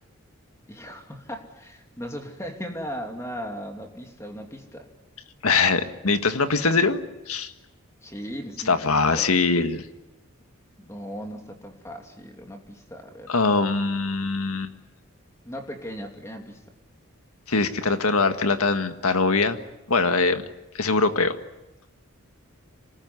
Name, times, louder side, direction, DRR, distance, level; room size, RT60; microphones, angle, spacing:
voice 1, 0.7-4.9 8.0-9.3 10.8-13.3 15.4-16.6, equal, 15° left, 3 dB, 2.8 m, -37 dB
voice 2, 5.4-7.5 8.7-9.9 13.3-14.7 17.5-19.6 19.9-20.4 20.7-21.4, left 4 dB, 85° left, 8 dB, 1.7 m, -22 dB
26.5 x 19.5 x 9.7 m, 0.99 s
head